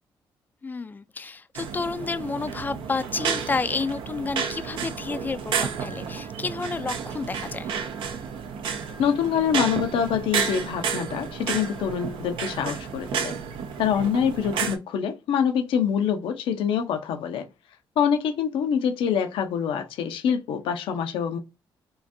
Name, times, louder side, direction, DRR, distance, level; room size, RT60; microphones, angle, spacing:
voice 1, 0.6-7.7, left 4 dB, 20° left, 0.4 m, -30 dB
sound 1, 1.5-14.8, right 6 dB, 80° right, 0.7 m, -31 dB
voice 2, 9.0-13.3 13.8-17.5 18.0-21.4, left 8 dB, 90° left, 0.7 m, -25 dB
3.8 x 2.5 x 2.6 m
cardioid pair, 105°, 9 cm